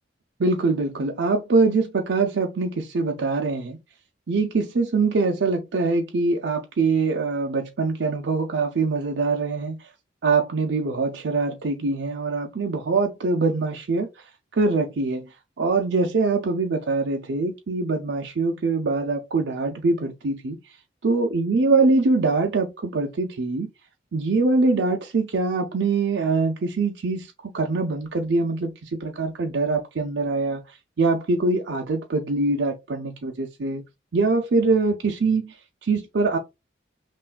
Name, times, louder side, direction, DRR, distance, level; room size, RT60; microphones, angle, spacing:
voice 1, 0.4-3.8 4.3-9.9 10.2-15.3 15.6-20.6 21.0-23.7 24.1-33.8 34.1-36.4, right 3 dB, 70° right, 0.5 m, -23 dB
5.7 x 2.5 x 2.2 m
head